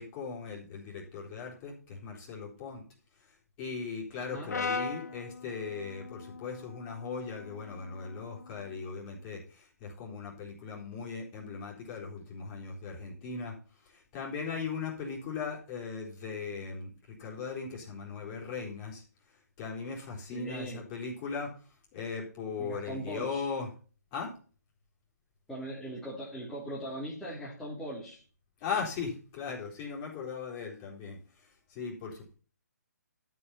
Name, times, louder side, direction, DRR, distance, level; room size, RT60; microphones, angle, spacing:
voice 1, 0.0-2.8 3.6-13.5 13.8-19.0 19.6-21.5 21.9-23.7 24.1-24.3 28.6-32.3, left 5 dB, 25° left, -1 dB, 3.9 m, -38 dB
voice 2, 4.2-4.6 20.3-20.9 22.6-23.4 25.5-28.2, right 1 dB, 5° left, -7 dB, 2.9 m, -40 dB
Brass instrument, 4.5-8.7, left 4 dB, 70° left, 0.9 m, -39 dB
12.5 x 5.6 x 5.6 m, 0.38 s
figure-of-eight pair, 145°, 9 cm